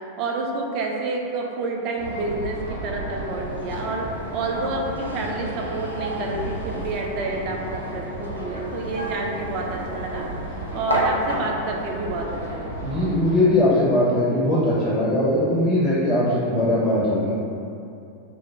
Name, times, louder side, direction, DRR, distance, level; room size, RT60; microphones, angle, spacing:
voice 1, 0.2-12.7, right 2 dB, 40° right, 0 dB, 0.3 m, -29 dB
sound 1, 2.0-13.3, right 1 dB, 75° right, 0.7 m, -34 dB
sound 2, 3.4-11.9, equal, 85° left, 0.4 m, -34 dB
voice 2, 12.8-17.3, left 1 dB, 30° left, -7 dB, 0.5 m, -20 dB
2.1 x 2.0 x 3.0 m, 2.6 s
figure-of-eight pair, 90°, 0 cm